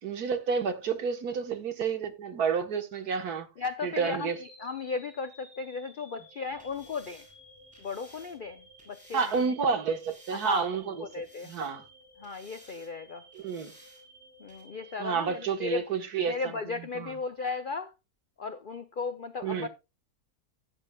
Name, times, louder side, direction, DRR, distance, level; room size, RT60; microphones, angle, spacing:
voice 1, 0.0-3.5 3.8-4.4 9.1-11.1 11.5-11.8 13.4-13.7 15.0-16.4 17.0-17.1 19.4-19.7, right 6 dB, 70° right, 1.8 m, -30 dB
voice 2, 3.6-7.2 7.8-9.4 10.3-10.7 11.0-11.5 12.2-13.2 14.4-15.8 16.2-17.9 18.4-19.7, left 4 dB, 60° left, 0.5 m, -36 dB
sound 1, 4.1-16.3, right 1 dB, 45° right, 7.5 m, -55 dB
sound 2, 6.5-9.5 9.9-10.8 11.1-11.9 12.2-12.9 13.3-14.0 14.5-14.6, equal, 5° right, 5.4 m, -57 dB
15.0 x 9.0 x 2.3 m
omnidirectional pair, 1.7 m